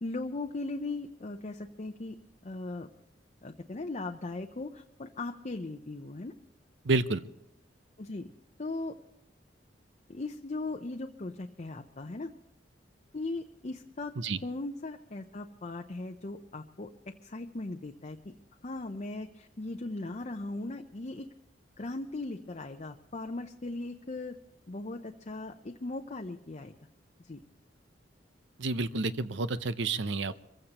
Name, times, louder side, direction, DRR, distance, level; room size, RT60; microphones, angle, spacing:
voice 1, 0.0-2.2 2.4-2.9 3.4-6.3 8.0-8.3 8.6-8.9 10.1-12.3 13.1-14.1 14.4-18.3 18.6-21.3 21.8-24.4 24.7-26.7 27.2-27.4, left 2 dB, 40° left, 3 dB, 0.7 m, -38 dB
voice 2, 6.8-7.2 14.2-14.4 28.6-30.4, right 3 dB, 80° right, 13 dB, 0.7 m, -29 dB
24.5 x 15.5 x 3.0 m, 0.82 s
head